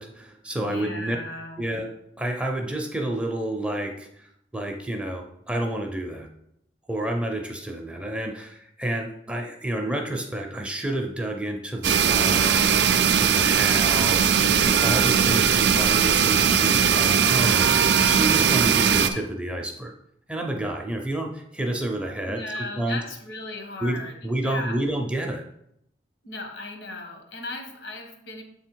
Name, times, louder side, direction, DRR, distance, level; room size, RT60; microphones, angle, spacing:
voice 1, 0.0-1.2 1.6-4.3 4.5-6.3 6.9-19.9 20.3-23.0 23.8-25.4, right 1 dB, 5° right, 2 dB, 0.5 m, -30 dB
voice 2, 0.6-1.8 22.3-24.1 24.4-24.8 26.2-28.4, left 2 dB, 80° left, 3 dB, 1.3 m, -36 dB
sound 1, 11.8-19.1, right 7 dB, 65° right, 0.4 m, -19 dB
7.2 x 3.5 x 4.5 m, 0.78 s
head